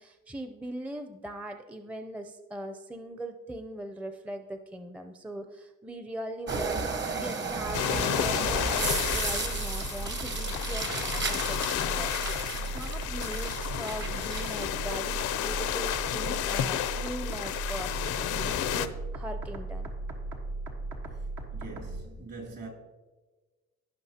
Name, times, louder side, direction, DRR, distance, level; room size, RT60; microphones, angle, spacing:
voice 1, 0.0-19.9, right 1 dB, 5° right, 0.5 m, -40 dB
sound 1, 6.5-14.7, right 4 dB, 40° right, 1.0 m, -34 dB
sound 2, 7.7-18.9, left 12 dB, 85° left, 0.6 m, -32 dB
sound 3, 8.4-22.0, right 2 dB, 80° right, 1.4 m, -37 dB
voice 2, 21.5-22.7, right 3 dB, 55° right, 2.5 m, -43 dB
16.0 x 5.6 x 2.8 m
cardioid pair, 90°, 30 cm